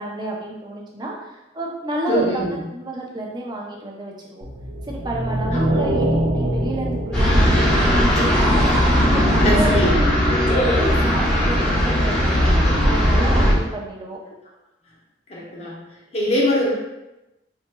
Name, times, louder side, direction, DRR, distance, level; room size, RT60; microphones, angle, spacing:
voice 1, 0.0-2.4 2.7-4.5 4.9-8.7 9.1-12.5 12.8-14.2, right 1 dB, 20° right, -2 dB, 0.5 m, -29 dB
voice 2, 2.1-2.6 5.5-5.8 9.4-10.0 15.3-15.8 16.1-16.7, left 1 dB, 30° left, -4 dB, 0.8 m, -22 dB
sound 1, 4.4-8.8, right 1 dB, 85° right, 0.7 m, -25 dB
sound 2, 7.1-13.5, equal, 5° left, 0.8 m, -18 dB
4.1 x 2.9 x 2.2 m, 0.97 s
head